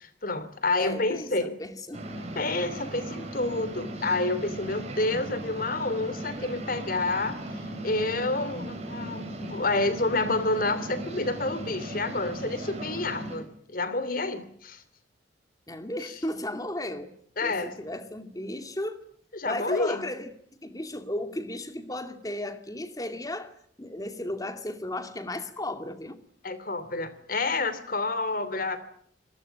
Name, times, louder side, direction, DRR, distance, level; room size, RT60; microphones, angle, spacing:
voice 1, 0.0-1.5 2.3-14.8 17.4-17.7 19.3-20.0 26.4-28.8, left 2 dB, 50° left, 14 dB, 2.9 m, -29 dB
voice 2, 0.8-1.3 1.6-2.1 15.7-17.1 17.4-19.0 19.5-20.3 20.6-23.5 23.8-26.2, left 1 dB, 20° left, 8 dB, 2.2 m, -34 dB
sound 1, 1.9-13.4, right 1 dB, 35° right, 6.6 m, -37 dB
26.5 x 19.5 x 9.1 m, 0.65 s
head